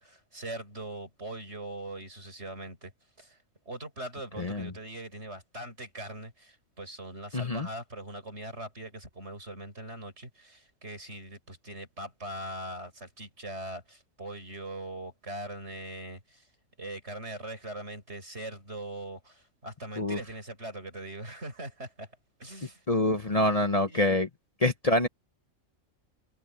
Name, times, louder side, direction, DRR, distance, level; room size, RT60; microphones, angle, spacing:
voice 1, 0.0-2.9 3.2-3.4 3.7-16.5 16.8-22.1 22.4-22.9 23.9-24.2, right 1 dB, 55° right, 7.0 m, -41 dB
voice 2, 4.4-4.7 7.3-7.7 20.0-20.2 22.9-24.3 24.6-25.1, left 1 dB, 30° left, 1.2 m, -26 dB
omnidirectional pair, 1.4 m